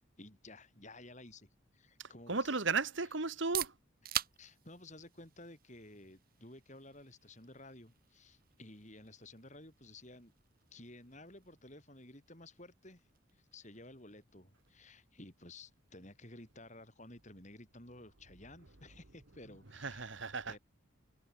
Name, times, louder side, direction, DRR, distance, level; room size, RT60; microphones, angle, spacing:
voice 1, 0.2-1.5 1.7-2.6 3.0-3.1 4.4-10.3 10.7-13.0 13.3-20.1 20.5-20.6, left 2 dB, 35° left, 7.1 m, -54 dB
voice 2, 2.3-3.7 19.8-20.6, right 4 dB, 65° right, 1.6 m, -34 dB
sound 1, 3.3-18.9, right 11 dB, 45° right, 5.6 m, -48 dB
head